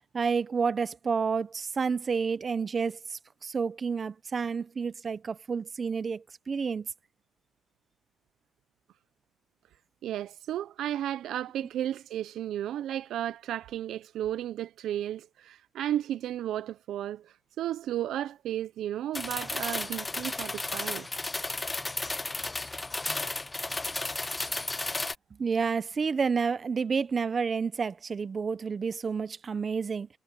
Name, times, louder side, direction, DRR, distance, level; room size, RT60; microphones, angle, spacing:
voice 1, 0.1-6.9 25.4-30.1, right 5 dB, 40° right, 0.9 m, -30 dB
voice 2, 10.0-21.1, right 11 dB, 80° right, 0.5 m, -33 dB
sound 1, 19.1-25.1, left 2 dB, 20° left, 0.3 m, -33 dB
cardioid pair, 90°, 0 cm